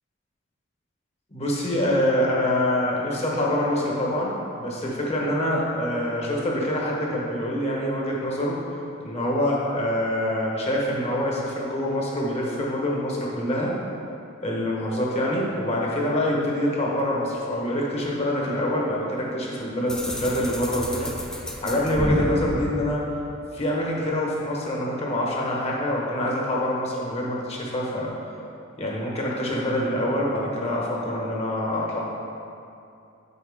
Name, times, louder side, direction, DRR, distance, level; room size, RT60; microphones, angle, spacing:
voice 1, 1.3-8.6 9.0-13.7 14.4-23.0 23.5-28.1 28.8-32.0, left 1 dB, 30° left, -3 dB, 1.2 m, -25 dB
sound 1, 19.9-23.7, equal, 5° left, 0.5 m, -30 dB
8.2 x 5.7 x 3.6 m, 2.6 s
head